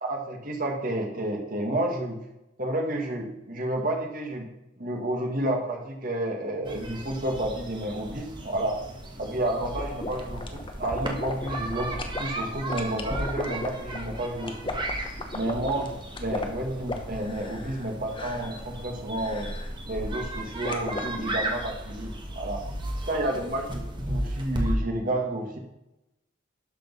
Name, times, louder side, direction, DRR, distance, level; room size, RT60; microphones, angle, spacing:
voice 1, 0.0-2.2 2.6-4.5 4.8-8.8 9.2-14.7 15.3-15.9 16.2-19.5 19.9-22.6 23.1-25.6, right 1 dB, 40° right, 2 dB, 1.9 m, -30 dB
sound 1, 6.6-24.7, right 1 dB, 25° right, 1.3 m, -35 dB
sound 2, 9.6-12.2 12.7-17.9 18.1-18.6 19.2-19.7 20.6-21.1, left 2 dB, 25° left, 0.9 m, -36 dB
12.0 x 5.1 x 5.4 m, 0.92 s
head